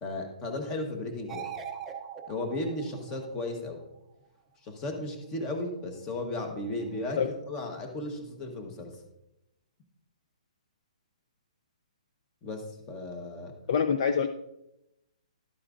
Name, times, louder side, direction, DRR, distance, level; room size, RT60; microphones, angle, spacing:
voice 1, 0.0-1.5 2.3-3.8 4.6-8.9 12.4-13.5, left 2 dB, 15° left, 4 dB, 1.1 m, -35 dB
sound 1, 1.3-3.6 6.8-7.0, right 8 dB, 5° right, 0.6 m, -41 dB
voice 2, 13.7-14.3, left 6 dB, 40° left, 8 dB, 0.5 m, -25 dB
12.0 x 8.4 x 2.5 m, 0.86 s
hypercardioid pair, 175°, 4 cm